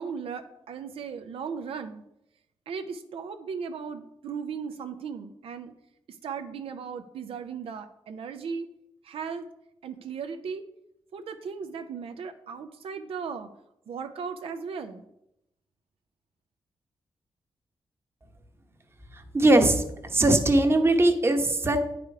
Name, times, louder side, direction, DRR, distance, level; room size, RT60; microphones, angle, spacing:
voice 1, 0.0-2.0 2.7-5.7 6.2-8.7 9.0-9.5 9.8-10.7 11.1-13.5 13.9-15.1, right 6 dB, 80° right, 7 dB, 0.6 m, -36 dB
voice 2, 19.3-19.8 20.1-21.8, right 1 dB, 25° right, 6 dB, 1.0 m, -20 dB
9.3 x 5.0 x 4.7 m, 0.82 s
cardioid pair, 100°, 10 cm